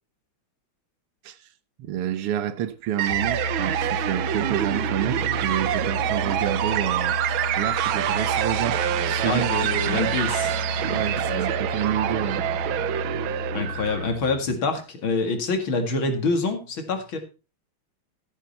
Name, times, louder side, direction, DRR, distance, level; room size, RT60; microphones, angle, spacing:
voice 1, 1.8-8.8 9.1-9.8 10.9-12.4, right 11 dB, 90° right, 1.9 m, -29 dB
Musical instrument, 3.0-14.7, left 1 dB, 45° left, 1.9 m, -32 dB
sound 1, 3.0-14.1, right 12 dB, 70° right, 1.5 m, -26 dB
voice 2, 9.2-10.6 10.9-11.0 11.3-11.4 13.5-17.2, left 3 dB, 65° left, 2.9 m, -26 dB
14.0 x 8.9 x 4.2 m
omnidirectional pair, 2.4 m